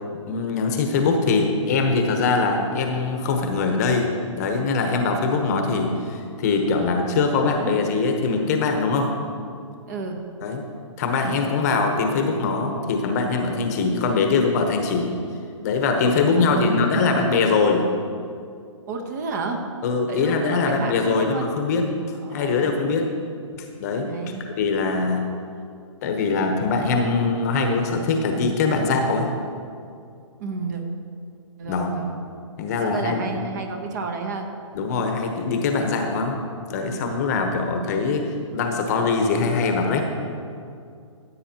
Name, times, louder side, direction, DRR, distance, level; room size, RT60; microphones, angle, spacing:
voice 1, 0.3-4.1 4.4-9.1 10.4-10.6 11.0-15.1 15.6-17.9 19.8-21.8 22.3-23.1 23.8-24.1 24.4-25.2 26.0-29.3 31.7-31.9 32.6-33.4 34.7-36.4 36.7-40.0, left 4 dB, 30° left, 4 dB, 0.9 m, -22 dB
voice 2, 9.9-10.2 16.4-17.2 18.9-19.6 20.1-21.5 22.2-22.8 24.0-24.4 30.4-30.8 31.6-32.2 32.8-34.5, right 4 dB, 35° right, 4 dB, 1.0 m, -31 dB
15.0 x 8.5 x 2.9 m, 2.4 s
hypercardioid pair, 155°, 17 cm